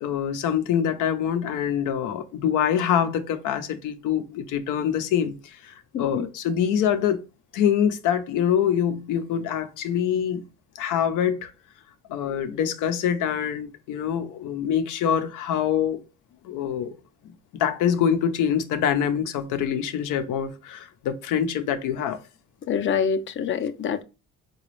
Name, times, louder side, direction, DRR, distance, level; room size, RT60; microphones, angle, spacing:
voice 1, 0.0-7.2 7.5-10.4 10.8-11.5 12.1-16.0 16.4-16.9 17.2-17.3 17.6-22.2, left 8 dB, 90° left, 0.6 m, -25 dB
voice 2, 5.9-6.3 12.2-12.4 22.7-24.0, left 7 dB, 40° left, 0.5 m, -26 dB
4.0 x 2.3 x 3.0 m
cardioid pair, 90°, 30 cm